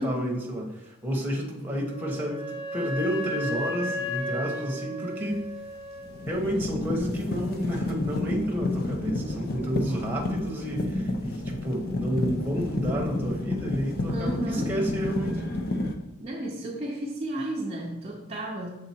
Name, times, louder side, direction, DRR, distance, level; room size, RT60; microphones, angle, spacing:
voice 1, 0.0-5.4 6.3-15.4, equal, 10° right, -1 dB, 1.0 m, -30 dB
Wind instrument woodwind instrument, 1.6-6.3, left 1 dB, 80° left, 1.2 m, -34 dB
sound 1, 5.3-5.5 5.9-15.9, left 2 dB, 45° left, 0.6 m, -30 dB
voice 2, 14.1-14.7 16.2-18.7, right 1 dB, 30° right, -3 dB, 0.6 m, -32 dB
6.9 x 3.7 x 4.3 m, 1.0 s
head